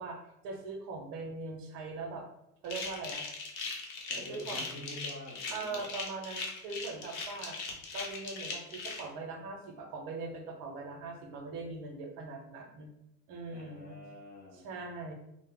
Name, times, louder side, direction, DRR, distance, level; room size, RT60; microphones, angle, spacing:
voice 1, 0.0-2.3 2.6-3.3 4.2-4.7 5.5-7.6 7.9-12.9 13.3-14.0 14.5-15.1, right 3 dB, 55° right, 2 dB, 0.6 m, -41 dB
sound 1, 2.6-9.0, left 4 dB, 75° left, 0.8 m, -39 dB
voice 2, 4.0-5.8 13.5-14.7, left 1 dB, 25° left, -4 dB, 0.4 m, -47 dB
2.1 x 2.0 x 3.5 m, 0.83 s
supercardioid pair, 140°, 42 cm